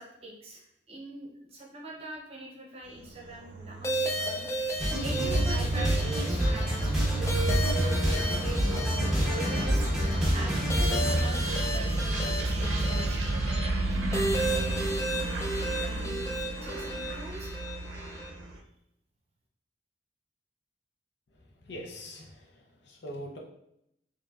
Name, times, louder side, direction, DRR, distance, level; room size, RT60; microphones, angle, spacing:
voice 1, 0.0-4.6 5.0-6.6 7.1-9.9 10.3-10.5 10.8-13.4 13.8-14.6 15.6-17.5, right 2 dB, 30° right, -2 dB, 0.8 m, -43 dB
sound 1, 2.9-18.6, right 2 dB, 85° right, 0.6 m, -32 dB
sound 2, 3.8-18.3, right 1 dB, 15° left, 0.3 m, -34 dB
sound 3, 4.8-11.2, equal, 5° right, 0.8 m, -28 dB
voice 2, 21.6-23.4, equal, 65° left, 0 dB, 0.7 m, -43 dB
4.8 x 2.7 x 2.4 m, 0.78 s
head